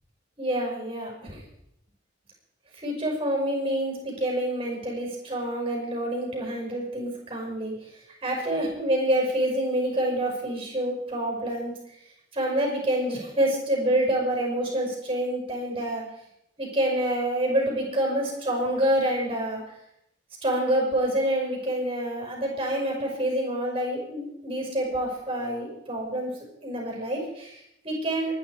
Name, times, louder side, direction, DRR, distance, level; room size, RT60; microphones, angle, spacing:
voice 1, 0.4-1.4 2.7-7.7 8.2-11.7 12.3-16.0 16.6-19.6 20.4-26.3 26.6-28.3, right 1 dB, 30° right, 0 dB, 6.0 m, -27 dB
24.5 x 10.5 x 5.0 m, 0.79 s
head